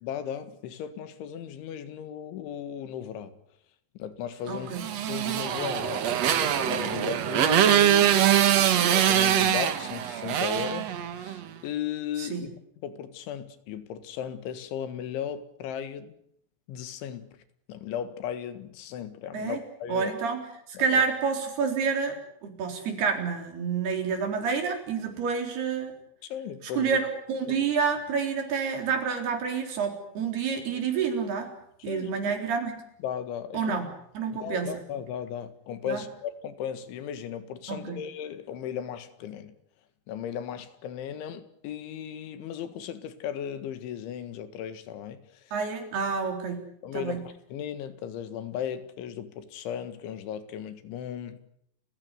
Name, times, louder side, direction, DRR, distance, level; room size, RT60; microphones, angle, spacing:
voice 1, 0.0-3.3 4.0-4.7 5.1-12.5 12.8-16.2 16.7-17.4 17.7-20.1 20.8-21.0 26.2-27.0 27.5-27.6 31.8-32.3 33.0-33.8 34.4-39.6 40.1-45.5 46.8-47.2 47.5-51.4, left 9 dB, 85° left, 4.2 m, -36 dB
voice 2, 4.5-4.8 12.2-12.4 19.3-19.6 19.9-26.0 26.6-31.5 31.8-32.7 33.5-33.9 34.2-34.7 35.9-36.0 37.7-38.0 45.5-46.6 46.9-47.2, right 6 dB, 60° right, 5.7 m, -28 dB
Motorcycle, 4.7-11.4, right 10 dB, 80° right, 1.4 m, -23 dB
30.0 x 15.5 x 9.7 m
omnidirectional pair, 5.3 m